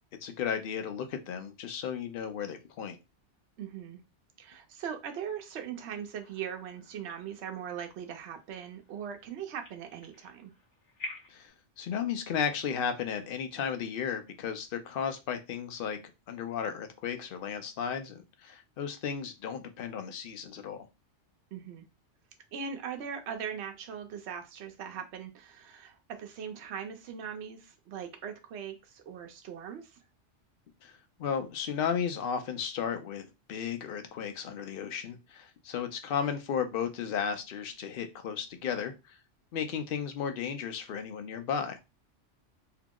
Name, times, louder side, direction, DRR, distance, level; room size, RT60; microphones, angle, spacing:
voice 1, 0.2-3.0 11.3-11.5 11.8-16.0 16.3-20.9 30.8-39.2 39.5-41.8, left 7 dB, 60° left, 7 dB, 0.7 m, -34 dB
voice 2, 3.6-4.0 4.4-10.5 21.5-21.8 22.5-30.0, right 7 dB, 70° right, 5 dB, 0.9 m, -40 dB
sound 1, 6.2-11.5, left 2 dB, 40° left, 1.0 m, -49 dB
2.8 x 2.0 x 3.5 m, 0.25 s
omnidirectional pair, 1.2 m